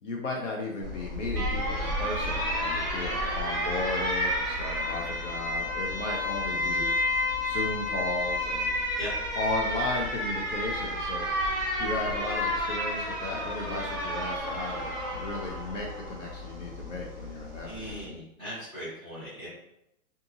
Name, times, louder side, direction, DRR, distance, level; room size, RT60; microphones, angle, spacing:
voice 1, 0.0-6.9 7.4-8.8 9.4-11.3 11.8-18.2, left 2 dB, 60° left, -1 dB, 0.6 m, -35 dB
Alarm, 0.8-18.0, left 1 dB, 15° right, 0.5 m, -31 dB
voice 2, 6.5-6.9 9.0-9.1 17.6-19.5, equal, 10° left, -10 dB, 1.2 m, -40 dB
2.7 x 2.5 x 2.5 m, 0.81 s
hypercardioid pair, 165°, 44 cm